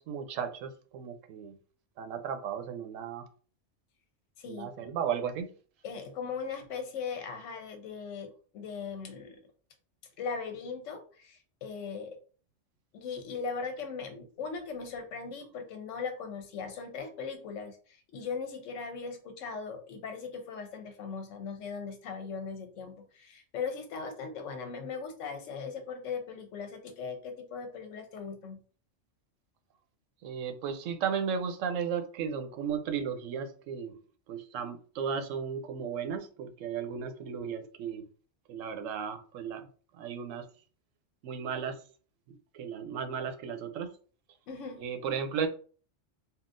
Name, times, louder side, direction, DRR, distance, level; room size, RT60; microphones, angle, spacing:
voice 1, 0.0-1.6 2.0-3.3 4.5-5.5 30.2-33.9 34.3-38.0 38.5-39.7 39.9-40.5 41.2-41.8 42.5-43.9 44.8-45.5, right 7 dB, 85° right, 0.9 m, -35 dB
voice 2, 4.4-4.7 5.8-9.4 10.2-12.2 12.9-28.6 44.5-44.8, left 5 dB, 75° left, 1.0 m, -39 dB
3.6 x 2.3 x 2.5 m
omnidirectional pair, 1.3 m